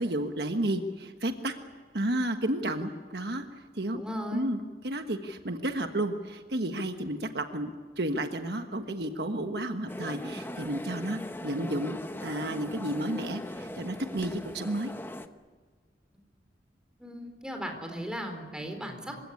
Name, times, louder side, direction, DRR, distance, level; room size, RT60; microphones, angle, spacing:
voice 1, 0.0-1.5 1.9-4.0 4.3-7.7 8.0-14.9, right 1 dB, 65° right, 6 dB, 1.4 m, -32 dB
voice 2, 4.0-4.5 17.0-19.2, equal, 5° right, 4 dB, 4.1 m, -37 dB
sound 1, 9.9-15.3, left 1 dB, 15° left, 1.0 m, -40 dB
27.5 x 17.0 x 9.9 m, 1.6 s
head